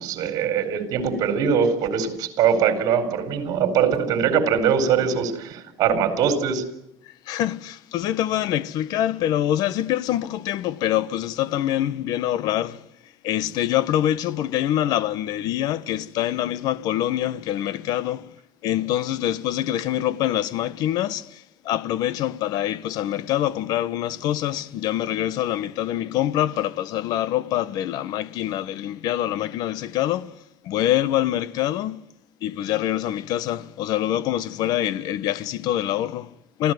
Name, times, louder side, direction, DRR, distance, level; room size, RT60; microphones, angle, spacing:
voice 1, 0.0-6.6, right 7 dB, 50° right, 4.4 m, -22 dB
voice 2, 7.3-12.8 13.2-18.3 18.6-32.0 32.4-36.7, left 12 dB, 60° left, 1.1 m, -25 dB
27.5 x 16.0 x 9.4 m
cardioid pair, 145°, 8 cm